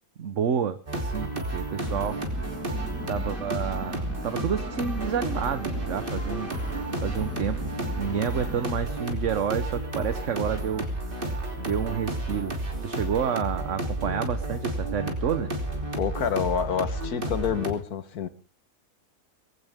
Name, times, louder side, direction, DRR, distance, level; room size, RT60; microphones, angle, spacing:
voice 1, 0.2-2.2 3.1-7.6 8.0-15.5, right 8 dB, 55° right, 1.2 m, -30 dB
sound 1, 0.9-17.7, right 1 dB, 35° right, 3.3 m, -31 dB
sound 2, 1.8-8.8, left 1 dB, 10° left, 1.5 m, -40 dB
voice 2, 16.0-18.3, left 7 dB, 80° left, 1.7 m, -28 dB
22.0 x 16.5 x 3.6 m
omnidirectional pair, 1.6 m